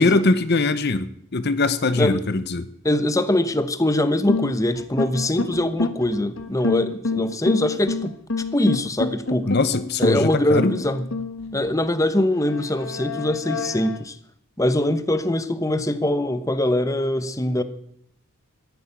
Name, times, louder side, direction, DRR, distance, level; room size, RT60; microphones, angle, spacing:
voice 1, 0.0-2.7 9.5-10.7, left 3 dB, 50° left, 13 dB, 0.8 m, -21 dB
voice 2, 2.8-8.1 8.5-9.5 10.0-11.1 11.5-14.2 14.6-17.6, left 1 dB, 15° left, 10 dB, 1.0 m, -22 dB
sound 1, 4.3-11.8 12.4-14.0, left 3 dB, 65° left, 1.4 m, -28 dB
14.0 x 11.0 x 8.9 m, 0.71 s
head